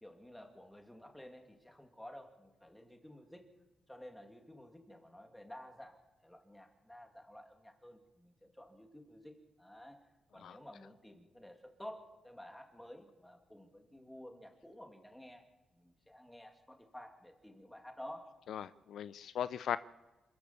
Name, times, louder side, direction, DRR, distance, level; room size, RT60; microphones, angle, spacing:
voice 1, 0.0-3.5 3.9-10.0 10.3-15.4 15.7-18.4, left 1 dB, 5° left, 4 dB, 2.7 m, -52 dB
voice 2, 18.5-19.8, left 9 dB, 75° left, 15 dB, 0.6 m, -38 dB
27.5 x 14.0 x 7.1 m, 1.1 s
cardioid pair, 140°, 0 cm